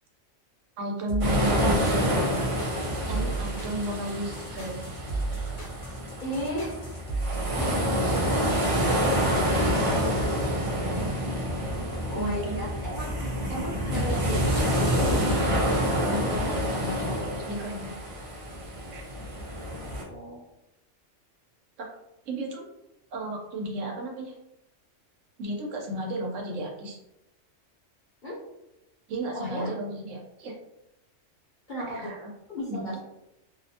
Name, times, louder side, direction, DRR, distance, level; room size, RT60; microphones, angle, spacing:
voice 1, 0.8-2.1 3.1-4.8 5.3-5.5 12.1-12.6 16.0-17.9 18.9-19.0 21.8-21.9 22.3-22.6 23.1-24.3 25.4-27.0 29.1-30.6 31.9-32.3 32.7-33.0, right 1 dB, 75° right, 1 dB, 0.9 m, -33 dB
sound 1, 1.1-9.0, right 3 dB, 70° left, 1.1 m, -35 dB
sound 2, 1.2-20.0, equal, 60° right, 0.3 m, -27 dB
voice 2, 6.2-6.7 7.2-11.1 12.1-13.1 13.5-15.2 16.3-17.0 20.0-20.4 28.2-28.4 29.3-29.7 31.7-32.1 32.5-33.0, equal, 45° left, -6 dB, 0.8 m, -36 dB
2.6 x 2.1 x 2.6 m, 0.89 s
omnidirectional pair, 1.3 m